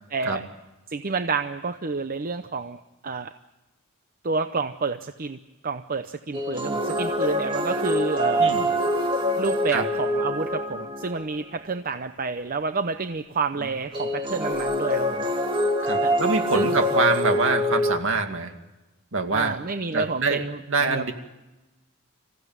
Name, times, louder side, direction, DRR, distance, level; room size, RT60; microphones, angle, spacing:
voice 1, 0.1-0.5 0.9-3.3 4.2-5.4 5.6-8.5 9.4-15.3 16.0-16.1 16.5-16.8 19.3-21.0, right 4 dB, 40° right, 9 dB, 0.7 m, -29 dB
sound 1, 6.3-11.4 13.9-18.0, equal, 25° right, 2.3 m, -25 dB
voice 2, 15.8-18.5 19.1-19.6 19.9-21.1, right 3 dB, 60° right, 5 dB, 2.4 m, -25 dB
26.5 x 15.5 x 9.3 m, 1.1 s
head